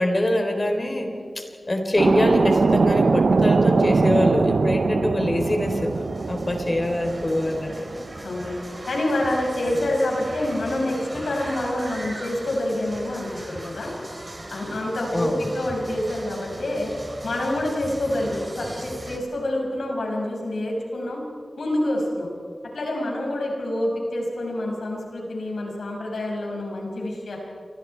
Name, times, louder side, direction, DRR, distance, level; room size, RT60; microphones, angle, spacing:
voice 1, 0.0-5.9 6.3-7.8 15.1-15.6, left 1 dB, 35° left, 4 dB, 3.9 m, -24 dB
sound 1, 2.0-8.3, right 4 dB, 70° right, 0.6 m, -22 dB
sound 2, 5.4-19.2, right 1 dB, 30° right, 3.4 m, -39 dB
voice 2, 8.2-8.5 8.9-13.9 14.5-16.9 17.2-21.2 21.6-22.3 22.7-27.4, left 1 dB, 90° left, -1 dB, 6.3 m, -27 dB
28.5 x 24.5 x 4.6 m, 2.2 s
wide cardioid pair, 60°, 0 cm